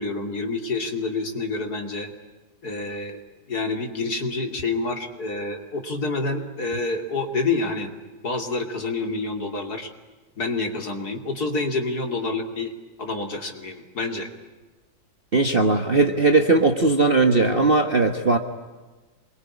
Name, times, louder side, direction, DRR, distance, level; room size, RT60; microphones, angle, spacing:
voice 1, 0.0-2.1 2.6-3.2 3.5-7.9 8.2-9.9 10.4-12.7 13.0-14.3, left 3 dB, 50° left, 5 dB, 3.1 m, -28 dB
voice 2, 15.3-18.4, right 3 dB, 30° right, 5 dB, 1.4 m, -18 dB
26.5 x 22.5 x 9.8 m, 1.2 s
omnidirectional pair, 2.2 m